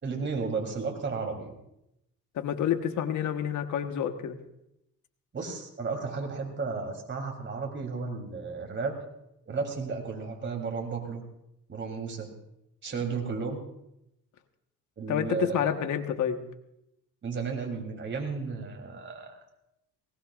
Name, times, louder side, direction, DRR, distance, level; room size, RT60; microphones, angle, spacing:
voice 1, 0.0-1.5 5.3-8.9 9.5-11.2 11.7-12.3 12.8-13.6 15.0-15.6 17.2-19.4, right 4 dB, 40° right, 2 dB, 3.4 m, -33 dB
voice 2, 2.3-4.4 15.1-16.4, left 9 dB, 75° left, 7 dB, 1.4 m, -28 dB
20.0 x 18.5 x 2.5 m, 0.83 s
cardioid pair, 90°, 30 cm